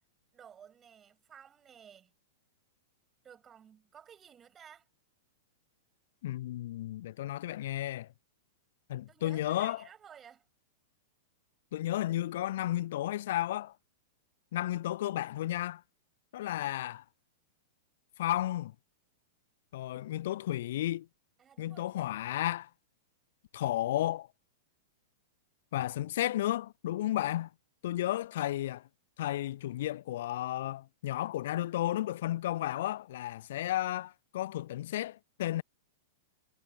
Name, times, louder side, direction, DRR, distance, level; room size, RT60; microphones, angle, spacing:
voice 1, 0.3-2.1 3.2-4.9 9.1-10.4 16.4-16.7 21.4-22.2, right 8 dB, 20° right, 7.7 m, -55 dB
voice 2, 6.2-8.1 8.9-9.8 11.7-13.7 14.5-15.8 16.3-17.0 18.2-18.7 19.7-21.1 21.6-22.7 23.5-24.3 25.7-27.5 27.8-28.9 29.2-35.6, left 14 dB, 55° left, 0.5 m, -33 dB
figure-of-eight pair, 100°, 0 cm